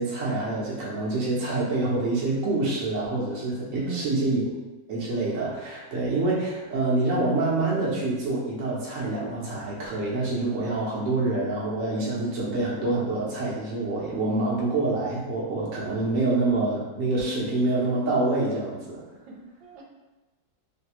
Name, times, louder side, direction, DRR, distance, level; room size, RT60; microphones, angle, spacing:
voice 1, 0.0-4.4 4.9-19.0, right 2 dB, 50° right, -5 dB, 1.1 m, -26 dB
voice 2, 3.7-4.4 19.3-19.8, right 5 dB, 85° right, -1 dB, 1.4 m, -38 dB
3.3 x 2.8 x 2.9 m, 1.1 s
omnidirectional pair, 2.1 m